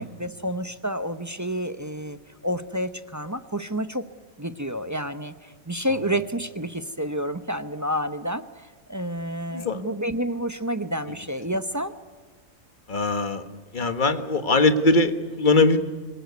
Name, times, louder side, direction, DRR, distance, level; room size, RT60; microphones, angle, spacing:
voice 1, 0.0-2.2 2.4-4.0 4.4-8.4 8.9-11.9, equal, 15° right, 11 dB, 0.6 m, -29 dB
voice 2, 9.5-9.8 12.9-13.4 13.7-15.8, left 2 dB, 35° left, 10 dB, 1.5 m, -21 dB
24.5 x 18.0 x 9.5 m, 1.5 s
omnidirectional pair, 1.5 m